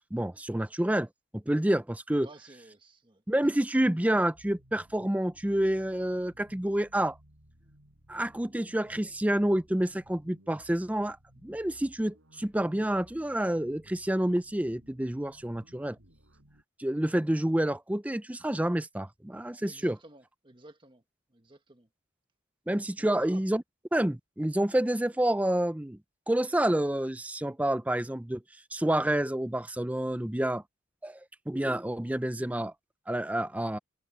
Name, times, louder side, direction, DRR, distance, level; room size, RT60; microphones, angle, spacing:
voice 1, 0.1-1.1 1.3-2.3 3.3-7.2 8.1-11.2 11.4-16.0 16.8-20.0 22.7-23.6 23.9-26.0 26.3-28.4 28.7-30.6 31.0-31.2 31.5-32.7 33.1-33.8, right 1 dB, 5° right, 0.5 m, -28 dB
voice 2, 2.2-3.2 19.6-21.0 21.3-21.9 23.0-23.4, right 2 dB, 25° right, 1.3 m, -52 dB
sound 1, 4.3-16.6, equal, 70° right, 4.4 m, -59 dB
head